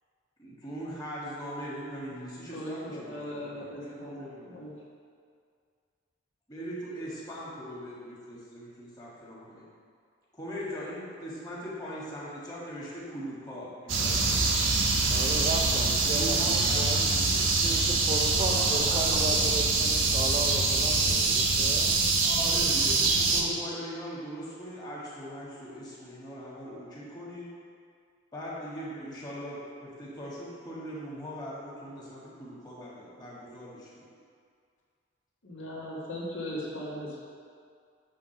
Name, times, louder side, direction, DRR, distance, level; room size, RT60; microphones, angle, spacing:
voice 1, 0.4-4.5 6.5-9.7 10.3-14.5 16.0-17.4 18.3-19.8 22.2-27.5 28.3-33.9, equal, 20° left, -7 dB, 1.7 m, -40 dB
voice 2, 2.5-4.7 35.4-37.2, left 1 dB, 75° left, -6 dB, 1.8 m, -38 dB
sound 1, 13.9-23.4, right 3 dB, 70° right, 0.8 m, -25 dB
voice 3, 15.1-17.0 17.4-22.0, right 2 dB, 30° right, 3 dB, 0.4 m, -35 dB
8.6 x 3.6 x 5.8 m, 2.2 s
head